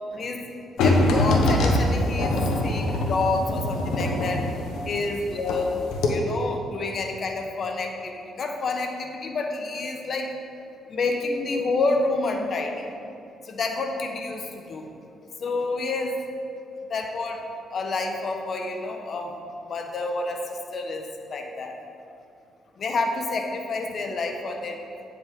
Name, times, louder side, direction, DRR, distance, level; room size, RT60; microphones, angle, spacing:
voice 1, 0.1-0.4 0.8-4.4 4.8-5.7 6.1-8.1 8.4-10.3 10.9-12.9 13.4-14.9 15.4-16.2 16.9-17.4 17.7-19.3 19.7-21.0 21.3-21.7 22.8-24.8, left 3 dB, 50° left, 3 dB, 1.0 m, -28 dB
sound 1, 0.8-5.6 5.9-6.1, left 1 dB, 90° left, 1.1 m, -23 dB
8.9 x 7.8 x 3.8 m, 2.6 s
cardioid pair, 90°, 0 cm